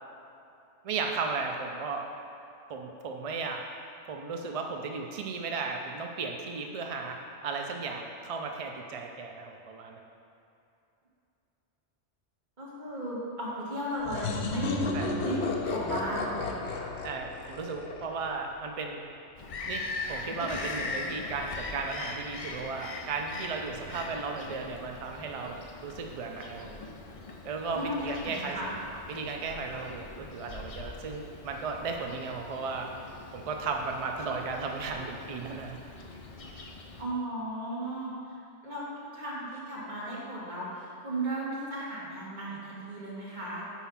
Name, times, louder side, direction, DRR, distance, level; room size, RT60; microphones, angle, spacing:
voice 1, 0.8-2.1 2.7-3.6 4.1-7.2 7.4-10.0 14.9-15.1 17.0-19.0 19.7-26.8 27.4-28.6 29.1-32.9 33.3-35.8, right 4 dB, 65° right, 3 dB, 0.3 m, -35 dB
voice 2, 12.6-14.9 15.2-16.9 27.7-28.7 29.7-29.8 37.0-43.8, right 1 dB, 40° right, -7 dB, 1.8 m, -36 dB
sound 1, 14.0-18.6, left 3 dB, 70° left, 0.9 m, -33 dB
Bird vocalization bird call bird song, 19.4-37.0, left 3 dB, 45° left, 0.4 m, -41 dB
5.7 x 4.7 x 5.7 m, 2.7 s
omnidirectional pair, 1.2 m